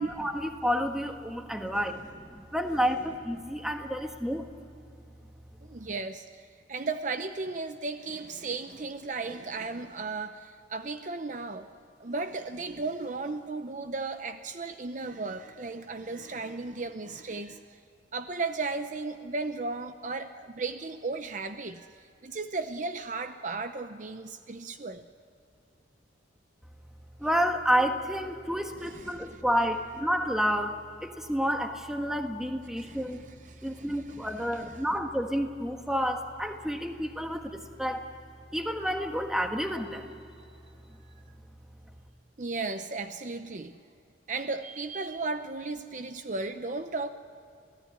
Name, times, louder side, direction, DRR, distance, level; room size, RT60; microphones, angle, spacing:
voice 1, 0.0-4.5 27.2-33.2 33.6-38.1 38.5-40.1, equal, 5° right, 4 dB, 1.5 m, -30 dB
voice 2, 5.7-11.7 12.0-17.8 18.1-25.0 28.8-29.1 32.8-33.0 33.5-34.7 42.4-43.8 44.3-47.1, right 3 dB, 40° right, 9 dB, 0.7 m, -35 dB
27.5 x 17.5 x 9.7 m, 2.5 s
head